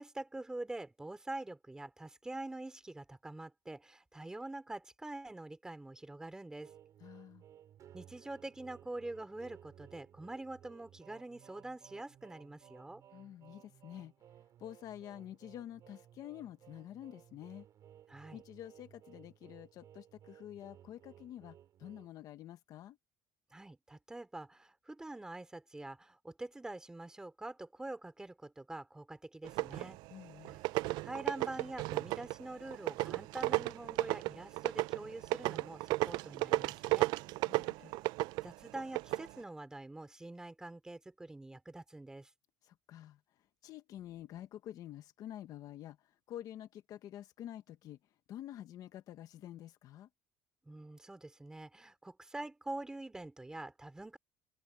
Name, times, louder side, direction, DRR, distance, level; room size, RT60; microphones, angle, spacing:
voice 1, 0.0-6.7 7.9-13.0 18.1-18.4 23.5-30.0 31.0-37.1 38.4-42.3 50.6-54.2, right 2 dB, 10° right, 3.4 m, -45 dB
sound 1, 6.6-22.1, right 10 dB, 45° right, 6.7 m, -59 dB
voice 2, 7.0-7.4 13.1-14.1 14.6-17.6 18.3-23.0 30.1-30.6 37.4-37.9 42.6-48.0 48.3-50.1, left 12 dB, 55° left, 1.3 m, -48 dB
sound 2, 29.4-30.1 30.4-39.3, right 21 dB, 70° right, 0.4 m, -34 dB
open air
cardioid pair, 135°, 8 cm